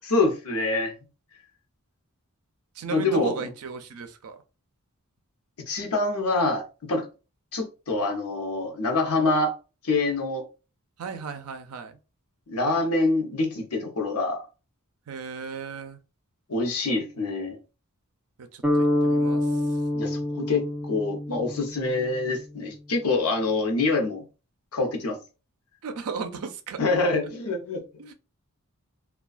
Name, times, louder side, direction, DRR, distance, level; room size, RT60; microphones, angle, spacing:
voice 1, 0.1-0.9 2.9-3.5 5.7-7.1 7.5-9.5 9.8-10.4 12.5-14.4 16.5-17.6 19.9-24.2 24.7-25.2 26.8-27.8, left 3 dB, 75° left, 0.7 m, -25 dB
voice 2, 2.8-4.4 11.0-11.9 15.1-16.0 18.8-19.4 25.8-26.8 28.0-28.1, right 5 dB, 80° right, 0.4 m, -35 dB
sound 1, 18.6-22.6, left 1 dB, 5° right, 0.5 m, -26 dB
2.3 x 2.2 x 2.4 m
head